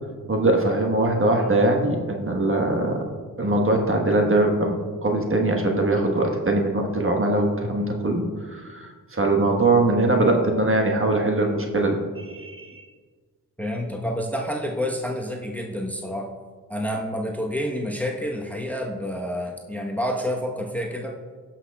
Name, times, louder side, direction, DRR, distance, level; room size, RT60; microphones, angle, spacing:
voice 1, 0.3-3.1 3.4-12.8, right 2 dB, 35° right, 1 dB, 1.4 m, -22 dB
voice 2, 13.6-16.3 16.7-21.1, equal, 5° left, 0 dB, 1.1 m, -28 dB
17.5 x 6.0 x 2.3 m, 1.5 s
cardioid pair, 50°, 37 cm